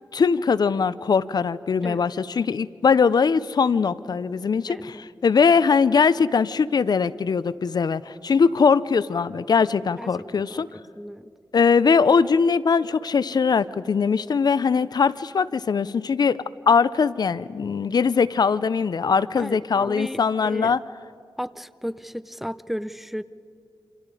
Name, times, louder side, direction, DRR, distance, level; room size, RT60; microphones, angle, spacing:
voice 1, 0.1-5.0 5.2-10.7 11.5-16.4 16.7-20.8, left 5 dB, 60° left, 17 dB, 0.5 m, -21 dB
voice 2, 4.7-5.0 10.0-11.3 19.4-20.8 21.4-23.2, equal, 5° right, 15 dB, 0.6 m, -34 dB
28.0 x 27.0 x 4.9 m, 2.5 s
wide cardioid pair, 75°, 8 cm